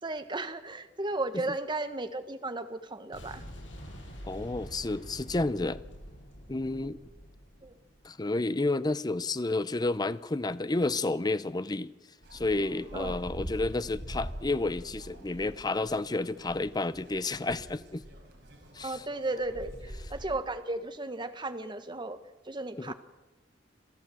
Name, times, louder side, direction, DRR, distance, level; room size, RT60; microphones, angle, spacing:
voice 1, 0.0-3.4 7.6-7.8 12.9-13.2 18.8-22.2 22.4-22.9, right 2 dB, 25° right, 1.3 m, -35 dB
Boom, 3.1-8.0, equal, 90° left, 7.5 m, -46 dB
voice 2, 4.2-5.8 6.5-7.0 8.0-11.9 12.3-18.0 18.7-19.0 22.8-22.9, left 2 dB, 20° left, 0.6 m, -30 dB
sound 1, 12.2-20.4, equal, 70° right, 5.0 m, -44 dB
27.0 x 15.0 x 7.8 m
head